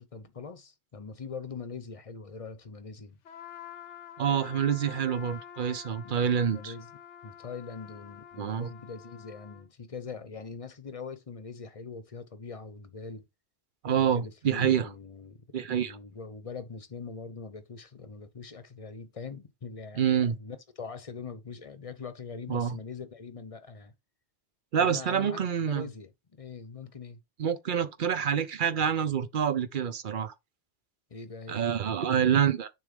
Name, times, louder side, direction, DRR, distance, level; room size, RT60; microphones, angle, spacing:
voice 1, 0.0-3.2 6.0-6.9 7.2-13.2 13.9-15.4 15.7-23.9 24.8-27.2 31.1-31.7, left 4 dB, 35° left, 0.8 m, -42 dB
Trumpet, 3.2-9.7, left 9 dB, 90° left, 1.1 m, -48 dB
voice 2, 4.2-6.7 8.4-8.7 13.8-14.9 15.5-16.0 20.0-20.4 22.5-22.7 24.7-25.8 27.4-30.3 31.5-32.7, right 8 dB, 50° right, 0.8 m, -27 dB
6.7 x 3.2 x 5.1 m
omnidirectional pair, 1.2 m